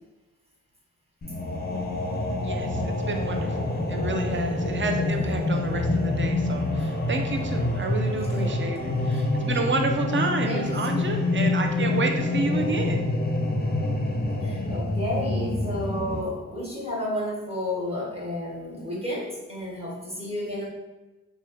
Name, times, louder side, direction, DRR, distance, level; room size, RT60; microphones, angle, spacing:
sound 1, 1.2-16.2, left 2 dB, 30° left, 0.6 m, -26 dB
voice 1, 2.4-13.1, right 3 dB, 35° right, 4 dB, 0.5 m, -30 dB
voice 2, 10.4-11.0 14.4-20.7, left 1 dB, 15° right, -5 dB, 1.3 m, -31 dB
3.0 x 2.3 x 3.1 m, 1.1 s
cardioid pair, 50°, 34 cm